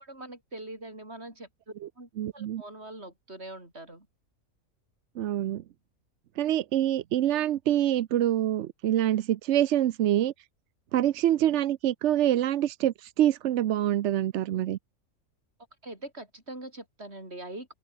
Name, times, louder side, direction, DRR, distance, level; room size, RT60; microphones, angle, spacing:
voice 1, 0.0-1.5 2.0-4.1 15.8-17.7, right 1 dB, 45° right, 6.4 m, -43 dB
voice 2, 2.2-2.6 5.2-5.6 6.4-10.3 10.9-14.8, right 12 dB, 65° right, 0.8 m, -25 dB
open air
omnidirectional pair, 1.5 m